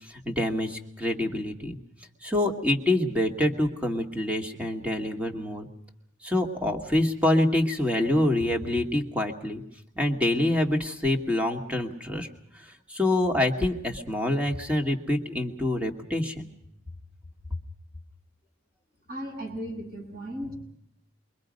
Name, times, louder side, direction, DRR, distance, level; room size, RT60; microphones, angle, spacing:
voice 1, 0.1-1.8 2.2-5.7 6.2-9.6 10.0-12.3 12.5-16.5, left 1 dB, 5° right, 3 dB, 2.0 m, -26 dB
voice 2, 19.1-20.5, equal, 50° right, 0 dB, 7.9 m, -36 dB
28.5 x 23.5 x 5.3 m, 0.75 s
head